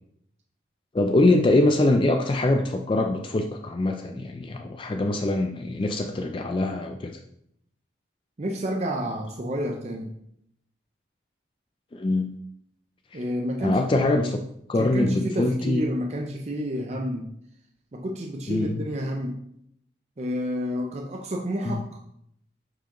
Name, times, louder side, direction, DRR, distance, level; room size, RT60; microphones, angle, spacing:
voice 1, 0.9-7.2 11.9-12.3 13.1-13.2 13.6-14.2 14.7-15.8 18.5-18.8 21.6-21.8, left 2 dB, 25° left, 4 dB, 0.3 m, -23 dB
voice 2, 8.4-10.2 13.1-14.3 14.8-17.4 17.9-19.4 20.2-22.0, equal, 35° right, 1 dB, 0.5 m, -30 dB
7.3 x 4.7 x 3.0 m, 0.75 s
head